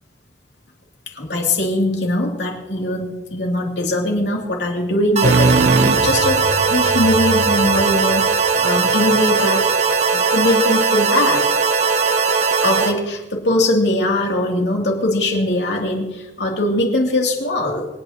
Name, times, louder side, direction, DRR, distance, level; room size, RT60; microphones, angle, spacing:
voice 1, 1.1-9.7 10.1-11.5 12.6-17.9, left 1 dB, 85° left, 0 dB, 2.7 m, -21 dB
sound 1, 5.2-12.9, right 5 dB, 40° right, 1.1 m, -18 dB
sound 2, 5.2-9.0, right 3 dB, 75° right, 0.7 m, -21 dB
26.5 x 9.1 x 2.9 m, 1.0 s
head